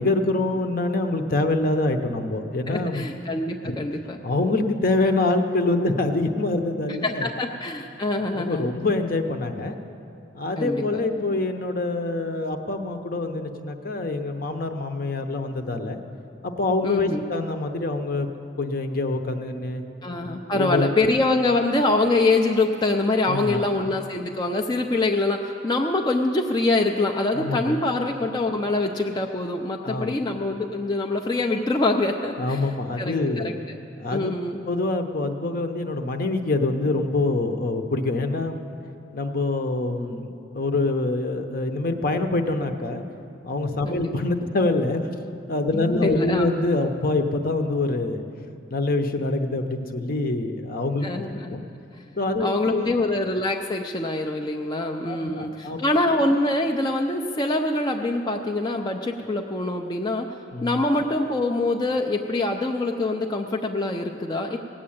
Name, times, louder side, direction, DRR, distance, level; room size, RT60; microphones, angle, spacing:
voice 1, 0.0-3.0 3.6-3.8 4.2-7.3 8.3-9.7 10.4-16.0 16.4-18.3 18.6-19.8 20.5-20.9 23.3-23.6 27.3-27.8 29.8-30.1 32.4-33.5 34.0-34.3 34.7-38.6 39.1-43.0 43.4-45.0 45.5-48.2 48.7-51.1 51.5-51.6 52.2-52.9 55.0-55.8 60.5-60.8, left 2 dB, 50° left, 6 dB, 0.9 m, -25 dB
voice 2, 2.7-4.2 6.9-8.7 10.6-11.0 16.8-17.2 20.0-32.6 33.0-33.5 34.1-34.6 43.8-44.1 45.7-46.5 51.0-51.5 52.4-60.3 60.6-64.6, left 2 dB, 25° left, 2 dB, 0.5 m, -24 dB
17.5 x 7.6 x 8.7 m, 2.6 s
head